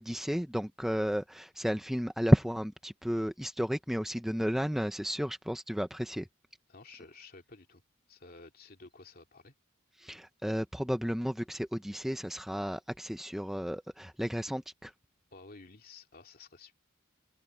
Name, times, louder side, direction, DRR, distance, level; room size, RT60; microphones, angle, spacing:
voice 1, 0.0-6.3 10.0-14.9, equal, ahead, 0.6 m, -32 dB
voice 2, 6.7-7.8 8.1-9.6 15.3-16.7, left 3 dB, 45° left, 2.6 m, -52 dB
head